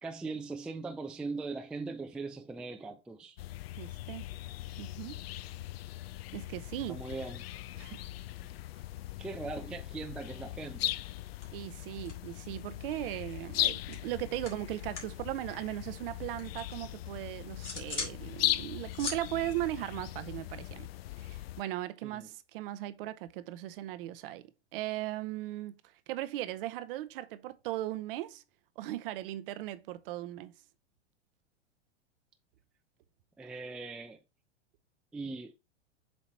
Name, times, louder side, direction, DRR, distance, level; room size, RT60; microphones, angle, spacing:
voice 1, 0.0-3.4 6.9-7.4 9.2-11.0 22.0-22.3 33.4-34.2 35.1-35.5, right 3 dB, 5° right, 0.3 m, -40 dB
sound 1, 3.4-21.6, left 15 dB, 60° left, 0.5 m, -39 dB
voice 2, 3.8-4.3 4.8-5.2 6.3-7.0 7.8-8.1 11.5-20.9 21.2-25.8 26.1-28.4 28.8-30.5, right 15 dB, 50° right, 0.7 m, -38 dB
sound 2, 10.9-11.2 11.4-12.6 12.9-15.2 15.5-16.8 17.2-18.2 18.5-20.6, left 4 dB, 85° left, 2.4 m, -43 dB
7.5 x 3.0 x 4.3 m
hypercardioid pair, 105°, 34 cm